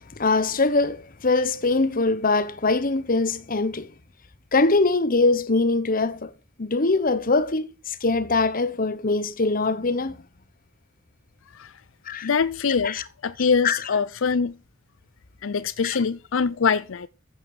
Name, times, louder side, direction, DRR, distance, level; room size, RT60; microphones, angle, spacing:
voice 1, 0.2-3.9 4.5-6.3 6.6-10.1 12.1-12.3 12.8-13.0 13.6-13.8 15.8-16.0, left 3 dB, 45° left, 1.0 m, -22 dB
voice 2, 12.2-14.5 15.4-17.1, left 5 dB, 75° left, 0.6 m, -24 dB
14.5 x 7.9 x 4.9 m
head